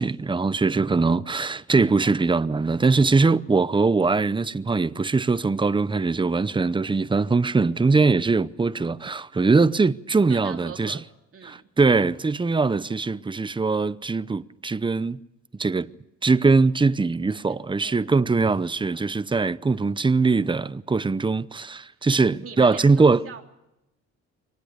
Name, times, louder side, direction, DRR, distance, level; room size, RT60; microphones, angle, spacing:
voice 1, 0.0-11.0 11.4-15.2 15.6-15.9 16.2-23.2, right 4 dB, 15° right, 0.7 m, -21 dB
voice 2, 10.3-11.0 11.3-11.6 17.8-18.1 22.4-23.4, right 6 dB, 45° right, 3.3 m, -41 dB
24.0 x 19.0 x 6.7 m
cardioid pair, 90°, 30 cm